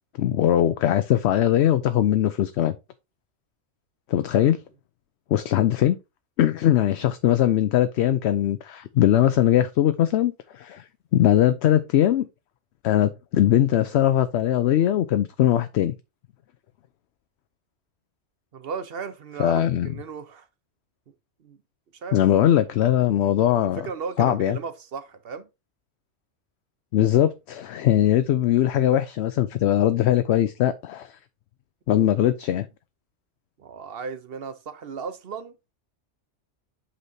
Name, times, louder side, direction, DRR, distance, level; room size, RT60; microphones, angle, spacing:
voice 1, 0.2-2.7 4.1-4.6 5.3-6.0 6.4-10.8 11.1-12.3 12.8-15.9 19.4-19.9 22.1-23.8 24.2-24.6 26.9-31.2 31.9-32.7, left 11 dB, 70° left, 0.8 m, -20 dB
voice 2, 18.5-20.5 21.4-21.6 21.9-22.2 23.6-25.5 31.9-32.3 33.6-35.6, right 5 dB, 60° right, 0.9 m, -36 dB
8.0 x 5.7 x 2.7 m
omnidirectional pair, 1.2 m